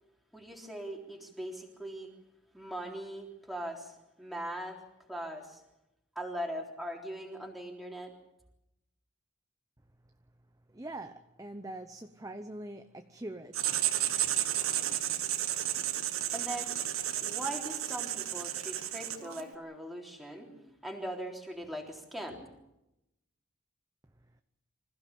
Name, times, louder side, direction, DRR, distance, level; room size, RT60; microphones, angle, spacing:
voice 1, 0.3-2.1 2.5-4.8 5.1-5.6 6.2-8.1 16.1-22.5, right 1 dB, ahead, 0 dB, 3.6 m, -40 dB
voice 2, 10.7-13.8, right 1 dB, 15° right, 8 dB, 0.8 m, -43 dB
Writing, 13.5-19.5, right 12 dB, 85° right, 1.7 m, -32 dB
26.0 x 16.0 x 8.5 m, 0.88 s
head